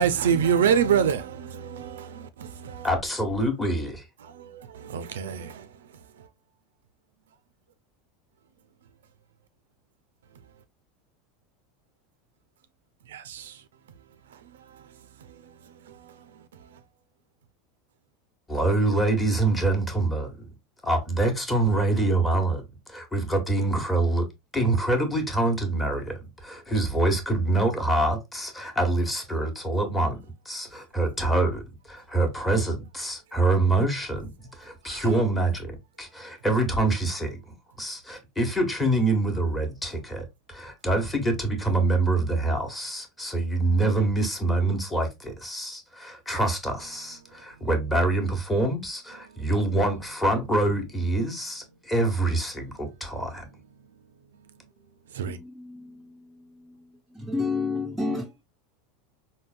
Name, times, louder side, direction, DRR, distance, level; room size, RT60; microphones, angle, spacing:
voice 1, 0.0-2.9 4.2-6.3 13.1-13.6 14.3-16.8 34.8-35.1 49.3-49.5 55.1-55.4, right 8 dB, 85° right, 0.3 m, -28 dB
voice 2, 2.8-4.1 18.5-20.5 20.8-24.3 24.5-30.2 30.4-53.5, right 2 dB, 15° left, 1.0 m, -25 dB
voice 3, 55.2-56.9 57.1-58.4, left 3 dB, 5° right, 0.4 m, -31 dB
3.7 x 2.1 x 2.4 m
hypercardioid pair, 100°, 0 cm